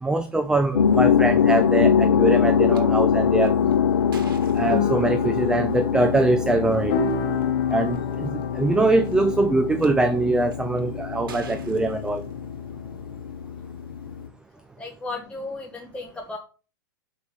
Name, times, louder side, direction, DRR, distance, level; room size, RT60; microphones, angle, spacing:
voice 1, 0.0-3.6 4.5-7.0 7.7-12.2, right 2 dB, 5° right, 0.5 m, -23 dB
sound 1, 0.7-14.3, left 7 dB, 80° left, 0.7 m, -23 dB
sound 2, 2.7-2.8 3.4-5.3 6.6-6.7 7.4-7.5 7.7-8.1 8.9-9.9 10.5-10.8 11.3-12.7, right 6 dB, 70° right, 1.8 m, -44 dB
sound 3, 3.6-13.2, left 6 dB, 50° left, 1.8 m, -32 dB
voice 2, 14.8-16.4, left 3 dB, 10° left, 1.2 m, -34 dB
6.8 x 4.9 x 6.3 m
hypercardioid pair, 115°, 12 cm